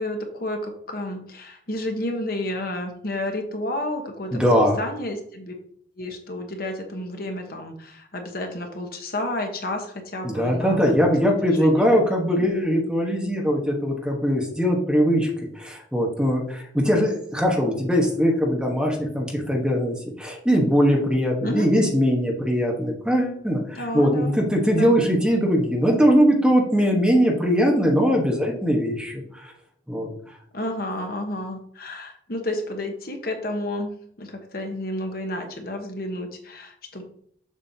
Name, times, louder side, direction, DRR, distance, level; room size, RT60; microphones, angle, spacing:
voice 1, 0.0-4.5 4.8-5.5 6.0-10.9 11.4-11.8 12.3-12.6 21.4-21.7 23.7-24.4 24.8-24.9 30.5-33.9 34.2-37.0, left 1 dB, 50° left, 4 dB, 1.0 m, -31 dB
voice 2, 4.3-4.8 10.2-15.3 15.5-29.5 29.9-30.1, equal, 5° right, -1 dB, 1.2 m, -21 dB
7.2 x 6.3 x 2.8 m, 0.66 s
head